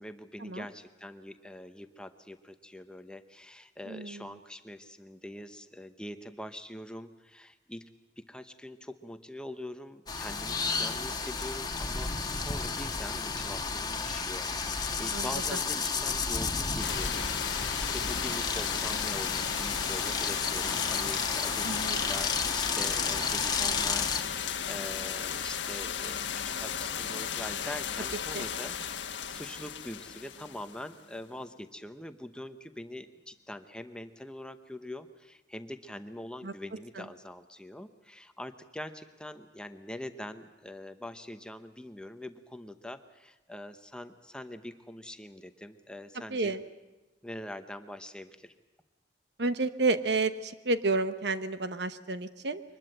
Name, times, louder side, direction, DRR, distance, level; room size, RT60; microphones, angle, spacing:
voice 1, 0.0-7.8 8.2-46.5 47.2-48.5, left 1 dB, 5° left, 9 dB, 0.8 m, -44 dB
voice 2, 3.9-4.3 15.1-15.6 21.6-22.0 28.3-28.4 36.4-36.5 37.0-37.1 46.3-46.6 49.4-52.6, right 3 dB, 65° right, 11 dB, 1.0 m, -30 dB
sound 1, 10.1-24.2, left 5 dB, 20° left, 1.3 m, -32 dB
sound 2, 16.8-31.1, left 8 dB, 90° left, 1.3 m, -35 dB
23.5 x 20.5 x 7.8 m, 1.1 s
head